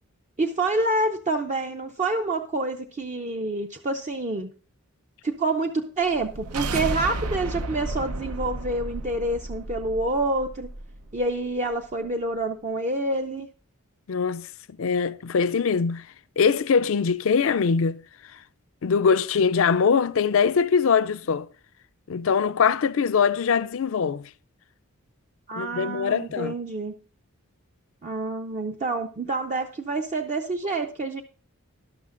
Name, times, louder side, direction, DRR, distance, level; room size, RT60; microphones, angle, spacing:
voice 1, 0.4-4.5 5.2-10.7 11.1-13.5 25.5-26.9 28.0-31.2, right 2 dB, 30° right, 0.5 m, -27 dB
sound 1, 6.1-11.2, right 2 dB, 90° right, 0.8 m, -33 dB
voice 2, 14.1-14.5 14.8-16.1 16.4-18.0 18.8-21.5 22.1-24.3 25.5-26.5, left 6 dB, 65° left, 0.4 m, -22 dB
12.0 x 12.0 x 2.5 m
head